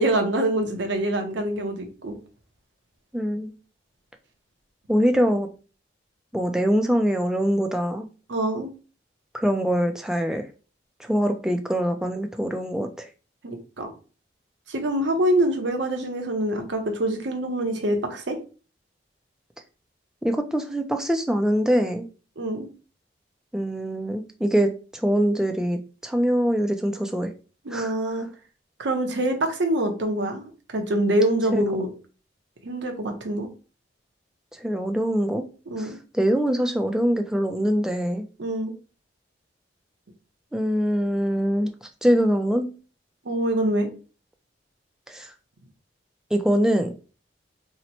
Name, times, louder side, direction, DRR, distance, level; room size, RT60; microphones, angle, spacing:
voice 1, 0.0-2.2 5.2-5.3 8.3-8.7 13.4-13.9 14.7-18.4 22.4-22.7 27.6-28.3 28.8-31.9 32.6-33.5 35.7-36.0 38.4-38.7 43.2-43.9, right 1 dB, 75° right, 5 dB, 0.7 m, -25 dB
voice 2, 3.1-3.5 4.9-5.5 6.3-8.1 9.3-10.4 11.0-13.1 20.2-22.1 23.5-27.3 27.7-27.9 31.5-31.8 34.6-35.5 35.8-35.9 36.1-38.3 40.5-41.7 42.0-42.7 45.1-45.3 46.3-46.9, equal, 5° right, 5 dB, 0.3 m, -23 dB
2.9 x 2.1 x 4.1 m, 0.35 s
head